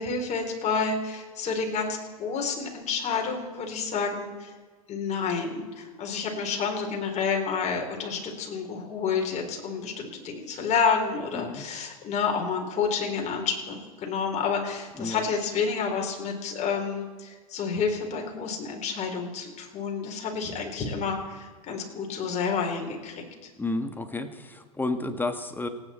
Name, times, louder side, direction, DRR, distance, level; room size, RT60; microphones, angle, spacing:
voice 1, 0.0-4.5 4.9-23.5, left 5 dB, 35° left, 2 dB, 4.0 m, -29 dB
voice 2, 23.6-25.7, left 2 dB, 10° left, 8 dB, 1.6 m, -31 dB
28.0 x 9.7 x 4.4 m, 1.5 s
hypercardioid pair, 90°, 20 cm